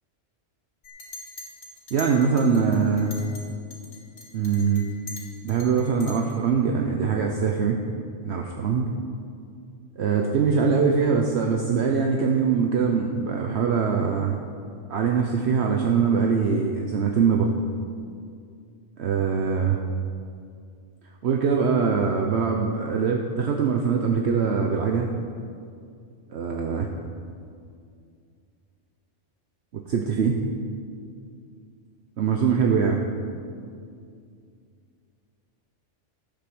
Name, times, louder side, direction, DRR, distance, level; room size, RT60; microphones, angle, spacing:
Chink clink, 0.8-3.4 3.7-6.4, left 2 dB, 75° left, 2.3 m, -42 dB
voice 1, 1.9-3.1 4.3-4.8 5.4-7.8 8.2-8.9 10.0-14.4 14.9-17.5 19.0-19.8 21.2-25.1 26.3-26.9 29.7-30.4 32.2-33.0, right 6 dB, 65° right, 2 dB, 1.0 m, -23 dB
12.0 x 8.5 x 6.2 m, 2.3 s
omnidirectional pair, 1.2 m